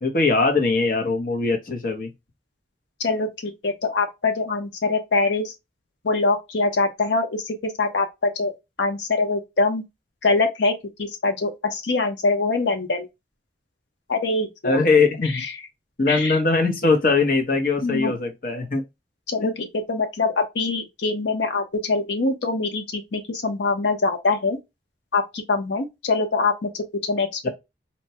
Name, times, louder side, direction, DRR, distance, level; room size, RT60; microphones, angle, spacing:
voice 1, 0.0-2.1 14.6-15.4 16.0-18.8 19.4-19.5 27.4-27.5, left 3 dB, 50° left, 0.8 m, -21 dB
voice 2, 3.0-5.5 6.0-8.5 8.8-9.8 10.2-13.1 14.1-14.8 15.2-15.6 16.1-16.4 17.8-18.1 19.3-24.6 25.1-27.5, left 3 dB, 90° left, 0.8 m, -24 dB
4.3 x 2.2 x 2.8 m
head